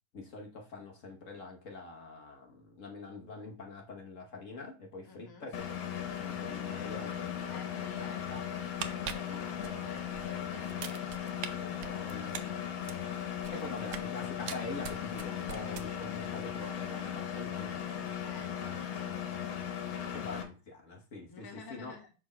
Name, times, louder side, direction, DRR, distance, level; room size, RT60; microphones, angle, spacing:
voice 1, 0.1-8.4 9.2-10.8 11.5-12.5 13.5-18.2 20.1-22.0, left 3 dB, 45° left, 2 dB, 1.3 m, -45 dB
voice 2, 5.0-5.5 7.5-8.4 8.7-10.4 18.2-20.0 21.3-22.1, left 4 dB, 20° left, 2 dB, 0.7 m, -52 dB
Engine, 5.5-20.4, left 9 dB, 80° left, 1.8 m, -37 dB
sound 1, 8.6-10.2 10.6-11.5 11.8-14.1 14.4-16.2 16.5-16.7, right 8 dB, 65° right, 0.9 m, -42 dB
6.2 x 4.3 x 5.0 m, 0.34 s
omnidirectional pair, 2.1 m